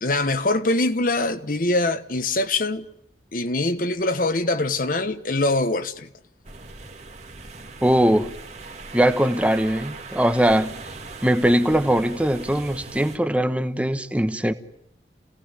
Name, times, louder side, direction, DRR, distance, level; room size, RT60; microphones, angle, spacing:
voice 1, 0.0-2.9 3.3-6.1, left 2 dB, 50° left, 1.3 m, -23 dB
sound 1, 6.4-13.2, right 3 dB, 40° right, 2.2 m, -39 dB
voice 2, 7.8-8.3 8.9-10.7 11.2-14.5, right 1 dB, 10° right, 1.2 m, -21 dB
28.5 x 18.0 x 9.8 m
head